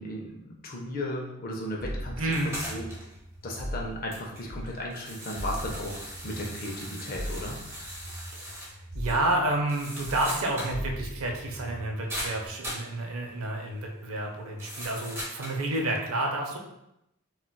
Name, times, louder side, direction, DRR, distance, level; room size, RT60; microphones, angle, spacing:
voice 1, 0.0-2.2 2.7-2.9 3.4-7.7, left 1 dB, 40° left, -1 dB, 0.5 m, -35 dB
sound 1, 1.8-4.9 5.4-9.8 10.0-12.5, equal, 50° right, 0.8 m, -39 dB
voice 2, 2.2-2.5 8.3-8.7 8.9-16.6, right 2 dB, 80° right, 1 dB, 0.6 m, -30 dB
sound 2, 2.3-3.1 3.5-3.6 4.1-8.7 9.1-9.2 9.5-10.8 11.1-11.2 12.1-12.9 14.6-15.6, equal, 10° right, 0.6 m, -39 dB
3.7 x 2.3 x 2.2 m, 0.84 s
head